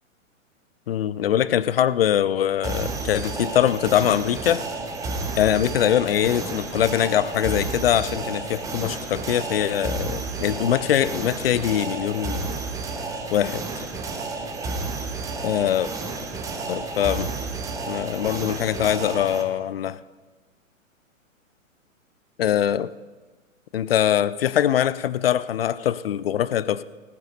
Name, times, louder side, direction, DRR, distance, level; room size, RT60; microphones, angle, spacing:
voice 1, 0.9-4.6 5.4-12.6 13.3-13.9 15.4-15.9 16.7-17.3 17.9-20.0 22.4-22.9 23.7-26.8, left 10 dB, 45° left, 18 dB, 0.5 m, -23 dB
sound 1, 2.6-19.4, right 3 dB, 10° right, 0.7 m, -31 dB
18.0 x 9.6 x 4.1 m, 1.3 s
figure-of-eight pair, 115°, 41 cm